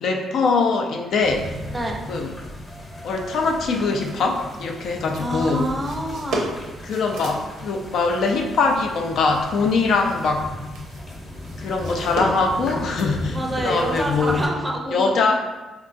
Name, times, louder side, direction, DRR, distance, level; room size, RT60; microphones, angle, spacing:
voice 1, 0.0-1.5 2.1-2.3 3.0-5.7 6.8-10.5 11.6-14.4 14.9-15.3, left 4 dB, 70° left, 2 dB, 0.4 m, -22 dB
sound 1, 1.2-14.5, left 1 dB, 25° left, 0.8 m, -36 dB
sound 2, 2.6-13.1, right 1 dB, 80° right, 0.6 m, -37 dB
voice 2, 5.2-6.5 13.3-15.3, right 1 dB, 15° right, 1 dB, 0.5 m, -27 dB
3.7 x 2.2 x 2.5 m, 1.1 s
cardioid pair, 90°, 0 cm